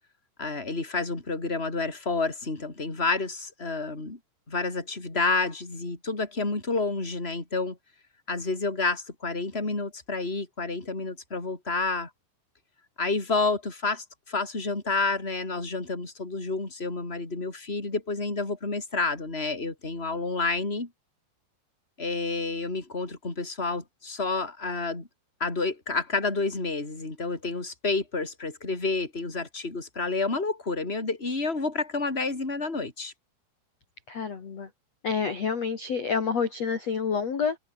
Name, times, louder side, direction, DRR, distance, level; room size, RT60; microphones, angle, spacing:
voice 1, 0.4-4.2 4.5-7.8 8.3-12.1 13.0-20.9 22.0-25.1 25.4-33.1, left 3 dB, 10° left, 4.8 m, -29 dB
voice 2, 34.1-34.7 35.0-37.6, left 6 dB, 40° left, 3.6 m, -28 dB
omnidirectional pair, 5.5 m